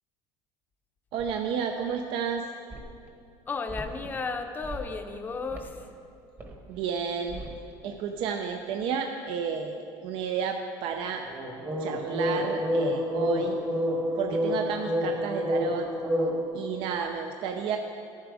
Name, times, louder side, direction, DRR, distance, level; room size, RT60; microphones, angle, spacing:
voice 1, 1.1-2.4 6.7-7.4 7.8-11.2 11.8-13.6 14.2-15.9 16.5-17.8, right 6 dB, 60° right, 4 dB, 0.6 m, -31 dB
sound 1, 1.2-1.3 2.7-2.8 3.7-4.2 4.6-5.1 5.5-5.7 6.4-6.5 7.3-7.6 11.3-16.4, equal, 20° right, 1.1 m, -29 dB
voice 2, 3.5-5.9 16.9-17.2, left 4 dB, 20° left, 6 dB, 0.7 m, -34 dB
13.5 x 7.4 x 4.9 m, 2.5 s
cardioid pair, 155°, 10 cm